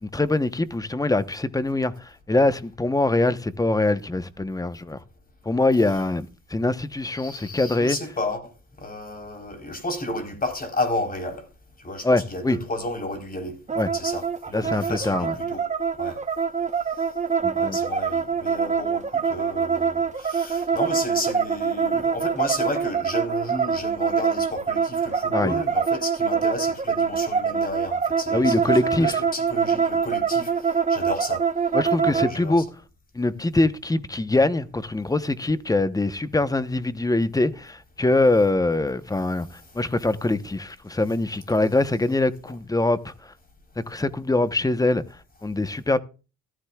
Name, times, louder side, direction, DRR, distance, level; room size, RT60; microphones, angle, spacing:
voice 1, 0.0-5.0 5.4-8.0 12.0-12.6 13.8-13.9 14.5-15.3 17.4-17.8 25.3-25.6 28.3-29.2 31.7-32.7 33.1-43.3 43.9-45.0 45.4-46.0, left 2 dB, 10° left, 1.0 m, -23 dB
voice 2, 7.2-8.5 8.8-11.5 11.8-13.6 13.9-15.6 16.0-16.2 17.5-31.4 32.1-32.6, left 1 dB, 30° left, 4.0 m, -32 dB
sound 1, 13.7-32.3, right 6 dB, 25° right, 0.9 m, -24 dB
14.5 x 13.5 x 2.4 m
cardioid pair, 90°, 30 cm